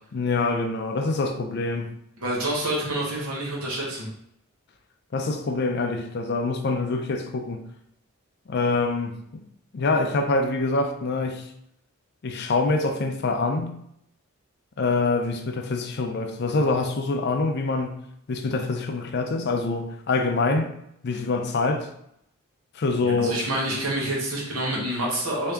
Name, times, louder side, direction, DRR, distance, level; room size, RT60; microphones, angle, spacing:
voice 1, 0.1-1.9 5.1-7.6 8.5-9.4 9.7-11.5 12.2-13.8 14.8-18.0 18.3-20.7 21.0-21.9 22.8-23.4, left 3 dB, 50° left, 5 dB, 0.4 m, -25 dB
voice 2, 2.2-4.1 23.0-25.5, right 1 dB, 75° right, -3 dB, 1.3 m, -27 dB
3.4 x 2.7 x 3.4 m, 0.74 s
head